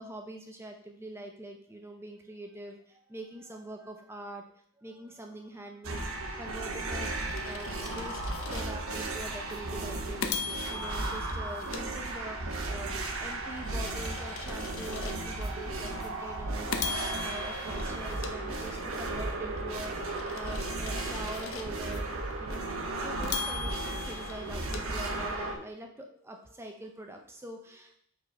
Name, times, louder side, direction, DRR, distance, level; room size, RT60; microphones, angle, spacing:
voice 1, 0.0-28.0, right 1 dB, 10° right, 3 dB, 0.6 m, -44 dB
sound 1, 5.8-25.6, right 2 dB, 80° right, 1.0 m, -35 dB
sound 2, 6.6-9.0 9.5-9.7 10.2-12.6 13.1-15.5 16.0-16.2 16.7-19.1 19.6-22.0 22.5-22.6 23.2-25.6, left 6 dB, 75° left, 0.7 m, -40 dB
5.6 x 4.3 x 4.6 m, 0.64 s
head